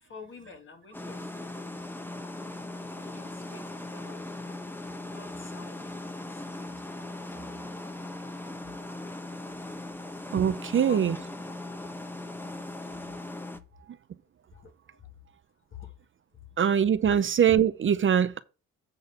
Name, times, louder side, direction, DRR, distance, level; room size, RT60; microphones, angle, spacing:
voice 1, 0.0-2.0 2.9-4.6 5.0-6.0 6.3-6.7 10.8-11.1 14.5-14.7 15.7-15.9 17.1-17.2, left 5 dB, 40° left, 1.9 m, -47 dB
sound 1, 0.9-13.6, left 2 dB, 5° left, 1.0 m, -39 dB
voice 2, 10.3-11.2 16.6-18.4, right 8 dB, 40° right, 0.6 m, -23 dB
8.1 x 3.8 x 6.8 m
cardioid pair, 90°, 30 cm